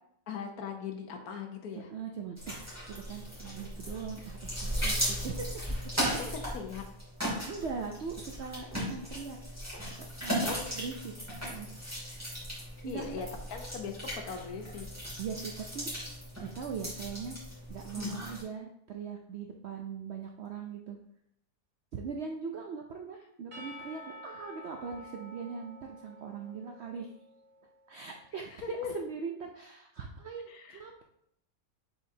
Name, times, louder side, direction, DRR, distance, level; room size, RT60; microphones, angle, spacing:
voice 1, 0.3-1.9 6.1-6.8 10.4-10.6 12.8-14.9 28.5-29.0 30.5-30.8, left 6 dB, 65° left, 4 dB, 1.1 m, -40 dB
voice 2, 1.9-2.6 2.9-5.9 7.5-9.4 10.0-10.5 10.7-11.1 11.4-11.7 12.8-13.2 15.2-15.9 16.4-21.0 21.9-27.1 27.9-31.0, right 6 dB, 75° right, 2 dB, 0.6 m, -40 dB
sound 1, 2.4-18.4, equal, 10° right, 2.4 m, -37 dB
Percussion / Church bell, 23.5-27.8, equal, 35° right, 1.0 m, -49 dB
7.5 x 4.8 x 2.7 m, 0.74 s
omnidirectional pair, 1.8 m